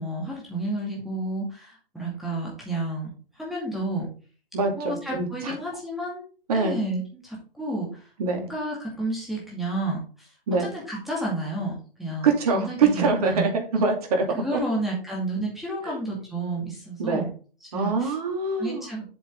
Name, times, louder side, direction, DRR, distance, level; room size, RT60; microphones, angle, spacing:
voice 1, 0.0-4.1 4.8-6.2 6.5-8.1 8.5-10.3 10.6-12.3 12.5-13.5 14.3-17.3 17.6-18.1 18.6-19.0, right 2 dB, ahead, -5 dB, 2.2 m, -31 dB
voice 2, 4.5-5.5 6.5-6.8 8.2-8.5 10.5-10.7 12.2-14.6 15.8-16.0 17.0-17.3 17.7-18.9, right 4 dB, 40° right, 3 dB, 2.7 m, -24 dB
7.7 x 6.9 x 3.6 m, 0.38 s
figure-of-eight pair, 130°, 29 cm